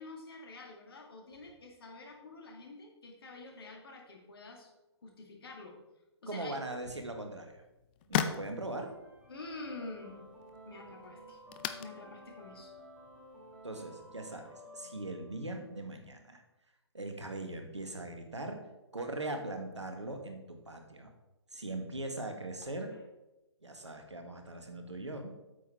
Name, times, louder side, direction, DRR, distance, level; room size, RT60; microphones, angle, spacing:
voice 1, 0.0-4.7 5.0-5.8 6.2-6.9 9.3-10.2 10.7-11.4 11.8-12.7, left 3 dB, 55° left, 1 dB, 2.2 m, -48 dB
voice 2, 6.3-7.6 8.1-8.9 13.6-16.4 16.9-18.6 18.9-21.1 21.5-22.9 23.6-25.3, right 2 dB, 85° right, 4 dB, 1.6 m, -40 dB
sound 1, 7.2-14.5, left 10 dB, 20° left, 0.4 m, -41 dB
sound 2, 8.8-15.8, equal, 5° right, 2.1 m, -53 dB
8.4 x 6.0 x 4.4 m, 0.99 s
figure-of-eight pair, 130°, 14 cm